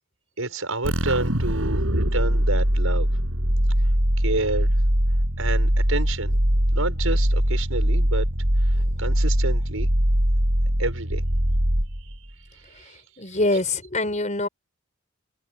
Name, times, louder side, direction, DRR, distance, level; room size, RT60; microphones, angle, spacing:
voice 1, 0.4-3.1 4.2-4.7 5.4-6.4 6.7-8.3 9.0-9.9 10.8-11.2 12.7-13.0, right 2 dB, 90° right, 6.0 m, -29 dB
sound 1, 0.8-12.3, equal, 75° right, 6.9 m, -22 dB
voice 2, 13.2-14.5, left 2 dB, 35° left, 5.6 m, -24 dB
head